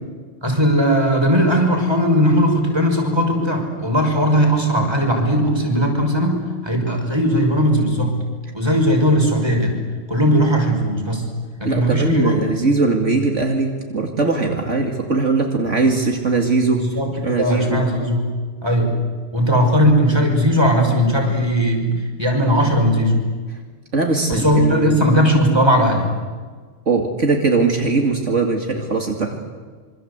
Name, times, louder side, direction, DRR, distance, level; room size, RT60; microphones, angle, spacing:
voice 1, 0.4-6.4 6.6-8.2 8.5-9.8 10.1-11.2 11.6-12.4 16.7-17.1 17.4-18.2 18.6-18.9 19.3-23.1 24.3-26.1, equal, 20° right, 2 dB, 5.8 m, -18 dB
voice 2, 11.6-16.8 17.2-17.8 23.9-25.0 26.9-29.4, right 3 dB, 65° right, 2 dB, 2.8 m, -20 dB
26.5 x 25.5 x 8.2 m, 1.5 s
omnidirectional pair, 1.3 m